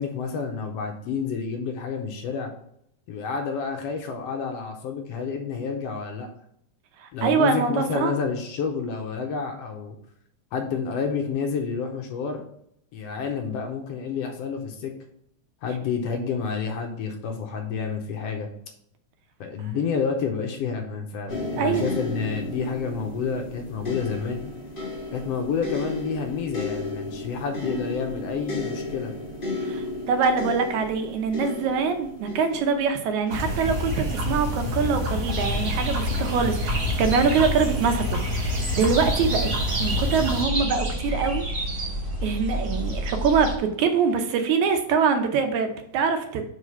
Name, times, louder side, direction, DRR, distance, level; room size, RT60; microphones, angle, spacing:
voice 1, 0.0-2.5 3.1-6.3 7.1-10.0 10.5-12.4 12.9-14.9 15.6-18.5 19.4-24.5 25.1-29.1, left 5 dB, 70° left, 4 dB, 1.6 m, -29 dB
voice 2, 7.0-8.2 21.6-21.8 29.6-39.5 39.8-41.4 42.2-46.5, right 5 dB, 80° right, 6 dB, 2.2 m, -24 dB
sound 1, 21.3-34.4 35.2-35.4, left 2 dB, 30° left, 0.9 m, -34 dB
sound 2, 33.3-40.4, left 1 dB, 60° right, 2.6 m, -27 dB
sound 3, 35.3-43.5, equal, 35° right, 1.2 m, -30 dB
4.9 x 4.8 x 5.6 m, 0.72 s
omnidirectional pair, 3.3 m